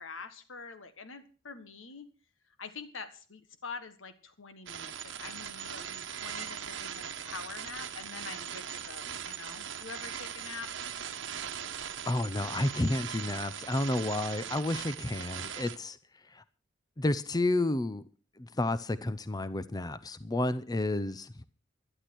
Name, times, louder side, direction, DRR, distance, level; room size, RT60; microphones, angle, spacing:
voice 1, 0.0-2.1 2.6-10.7, left 4 dB, 75° left, 11 dB, 1.5 m, -45 dB
sound 1, 4.7-15.8, right 8 dB, 65° right, 1.3 m, -40 dB
voice 2, 12.1-16.4 17.0-18.0 18.4-21.4, left 2 dB, 20° left, 15 dB, 0.7 m, -31 dB
12.0 x 11.5 x 6.2 m, 0.38 s
head